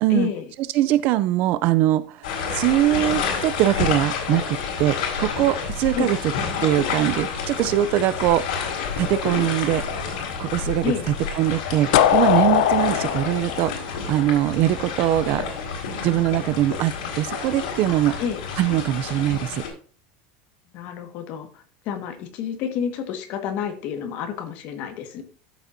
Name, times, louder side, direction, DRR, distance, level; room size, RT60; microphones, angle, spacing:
voice 1, 0.1-0.5 5.9-6.1 10.8-11.1 18.2-18.4 20.7-25.2, left 7 dB, 45° left, 5 dB, 1.6 m, -29 dB
voice 2, 0.7-6.2 6.6-8.6 9.0-9.8 10.4-10.9 11.4-15.4 16.0-18.1 18.6-19.6, right 14 dB, 40° right, 15 dB, 0.4 m, -22 dB
sound 1, 2.2-19.7, left 5 dB, 85° left, 3.9 m, -29 dB
sound 2, 11.9-14.8, left 11 dB, 70° left, 0.6 m, -20 dB
13.0 x 7.0 x 2.6 m, 0.39 s
supercardioid pair, 175°, 4 cm